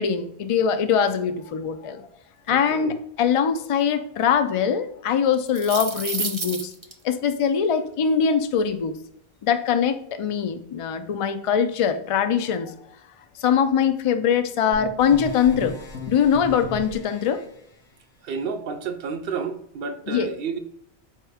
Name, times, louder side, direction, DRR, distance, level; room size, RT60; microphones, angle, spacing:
voice 1, 0.0-2.1 2.5-6.7 7.0-8.9 9.4-12.8 13.4-15.8 16.1-17.4 20.1-20.3, left 7 dB, 65° left, 0.3 m, -22 dB
voice 2, 2.5-3.0 18.2-20.6, right 5 dB, 70° right, 0.8 m, -31 dB
sound 1, 5.3-6.9, right 4 dB, 35° right, 0.5 m, -30 dB
sound 2, 14.7-17.4, left 2 dB, 85° left, 1.0 m, -36 dB
4.6 x 2.9 x 3.4 m
omnidirectional pair, 1.1 m